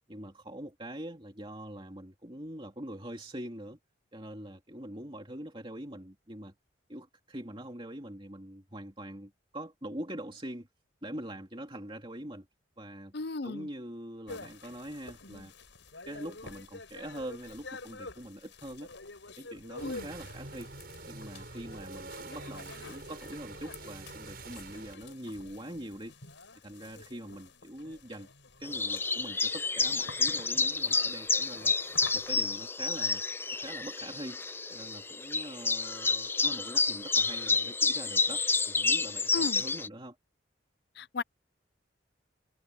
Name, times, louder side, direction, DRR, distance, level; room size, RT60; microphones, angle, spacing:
voice 1, 0.1-3.8 4.1-6.5 6.9-10.7 11.0-12.5 12.8-13.1 13.4-15.5 16.1-18.9 19.4-20.7 21.0-26.1 26.6-28.3 28.6-31.7 32.1-33.2 33.5-34.4 34.7-40.2, right 1 dB, 25° right, 2.7 m, -43 dB
voice 2, 13.1-13.7 19.8-20.1 39.3-39.6 41.0-41.2, left 3 dB, 60° left, 0.6 m, -35 dB
sound 1, 14.3-32.5, left 3 dB, 75° left, 6.0 m, -49 dB
sound 2, 19.8-24.9, right 3 dB, 55° right, 6.6 m, -46 dB
sound 3, 28.6-39.9, left 4 dB, 10° left, 0.4 m, -29 dB
head